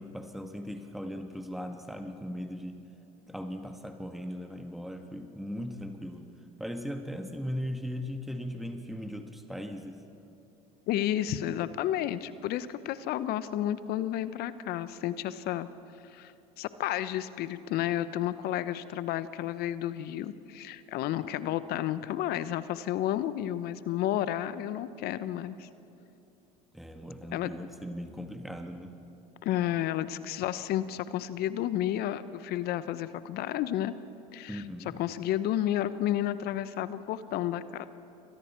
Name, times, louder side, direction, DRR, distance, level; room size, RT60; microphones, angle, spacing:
voice 1, 0.0-2.8 3.3-6.2 6.6-10.0 26.7-28.9 34.5-35.0, equal, ahead, 5 dB, 1.8 m, -38 dB
voice 2, 10.9-15.7 16.1-16.3 16.6-25.7 27.3-27.5 29.4-33.9 34.3-34.6 34.9-37.9, left 12 dB, 60° left, 14 dB, 1.0 m, -31 dB
29.0 x 24.5 x 4.6 m, 2.7 s
hypercardioid pair, 75°, 19 cm